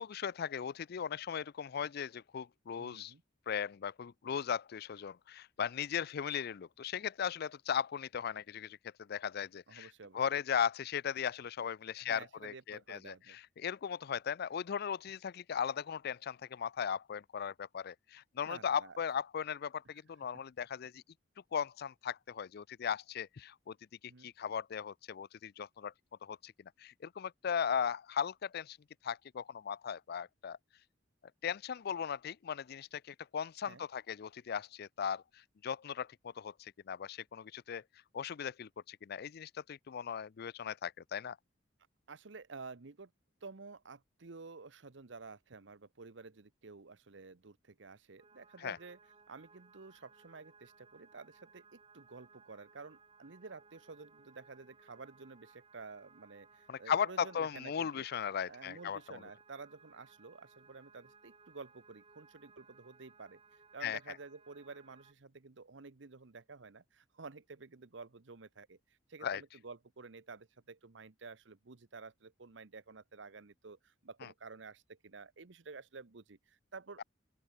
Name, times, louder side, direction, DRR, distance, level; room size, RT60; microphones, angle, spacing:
voice 1, 0.0-3.1 3.5-21.0 21.5-23.8 24.2-25.9 26.2-26.5 26.8-28.8 29.0-30.6 31.4-35.2 35.6-37.8 38.1-41.4 48.6-48.8 56.7-59.2 63.8-64.0 69.2-69.4, left 7 dB, 55° left, 0.4 m, -37 dB
voice 2, 2.7-3.2 9.7-10.2 12.0-13.4 18.4-19.0 24.1-24.3 33.6-33.8 42.1-43.1 43.4-49.0 49.3-58.0 58.5-68.8 69.1-77.0, right 4 dB, 70° right, 0.9 m, -51 dB
sound 1, 48.2-65.1, right 4 dB, 30° right, 7.3 m, -63 dB
open air
head